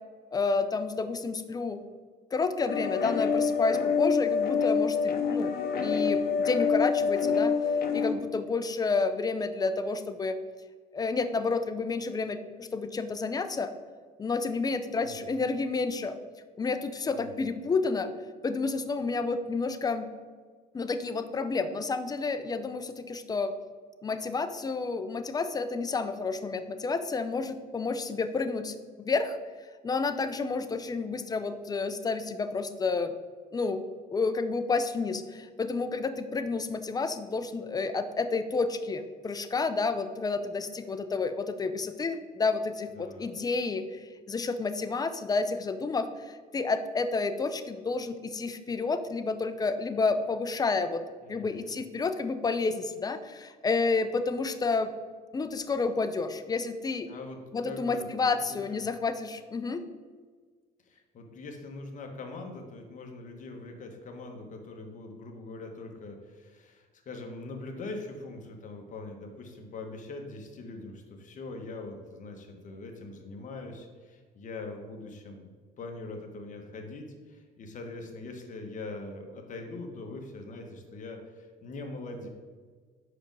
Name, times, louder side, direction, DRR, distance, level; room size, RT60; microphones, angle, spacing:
voice 1, 0.3-1.8 2.3-5.5 5.8-7.5 7.9-10.4 10.9-13.7 14.2-16.2 16.6-18.1 18.4-20.1 20.7-23.5 24.0-29.4 29.8-33.1 33.5-33.8 34.1-51.0 51.3-54.9 55.3-57.1 57.5-59.8, left 4 dB, 20° left, 10 dB, 0.5 m, -30 dB
sound 1, 2.7-8.1, left 5 dB, 65° left, 0.8 m, -26 dB
voice 2, 14.9-15.5 17.1-17.5 42.9-43.3 51.2-51.7 57.1-58.4 58.7-58.8 60.8-75.5 75.8-82.3, left 2 dB, 50° left, 3 dB, 1.3 m, -42 dB
5.1 x 5.0 x 6.1 m, 1.5 s
cardioid pair, 110°, 17 cm